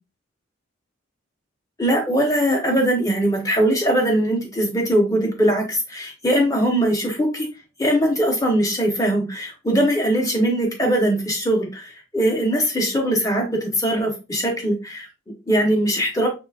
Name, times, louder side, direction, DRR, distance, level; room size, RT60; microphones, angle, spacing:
voice 1, 1.8-7.5 7.8-16.3, right 1 dB, 15° left, 1 dB, 1.0 m, -21 dB
6.3 x 3.3 x 2.5 m, 0.28 s
head